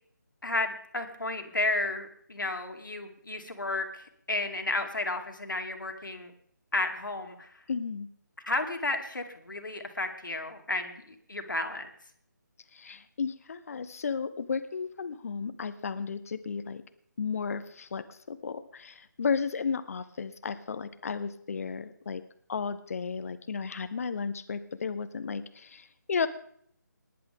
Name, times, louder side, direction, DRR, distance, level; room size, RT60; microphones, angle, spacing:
voice 1, 0.4-6.3 6.7-7.6 8.5-11.9, left 2 dB, 85° left, 4 dB, 2.8 m, -32 dB
voice 2, 7.7-8.1 12.7-16.8 17.2-22.2 22.5-26.3, left 5 dB, 50° left, 12 dB, 1.2 m, -34 dB
21.0 x 11.0 x 3.7 m, 0.65 s
figure-of-eight pair, 155°, 10 cm